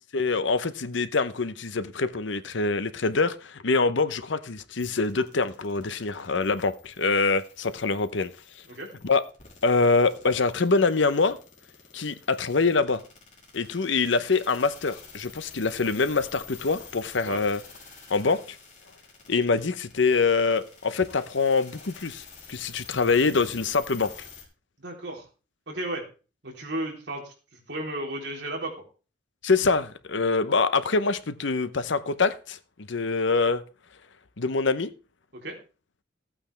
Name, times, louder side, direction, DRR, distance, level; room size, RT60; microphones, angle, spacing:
voice 1, 0.1-8.3 9.0-9.2 9.6-11.4 11.9-13.0 13.5-17.6 18.1-18.4 19.3-24.1 29.4-33.6 34.4-34.9, left 4 dB, 70° left, 0.8 m, -25 dB
sound 1, 4.8-24.4, left 6 dB, 40° left, 3.3 m, -49 dB
voice 2, 24.8-25.2 25.7-26.1 26.4-27.3 27.7-28.7 35.3-35.6, right 1 dB, 60° right, 3.6 m, -33 dB
15.0 x 8.8 x 3.3 m
head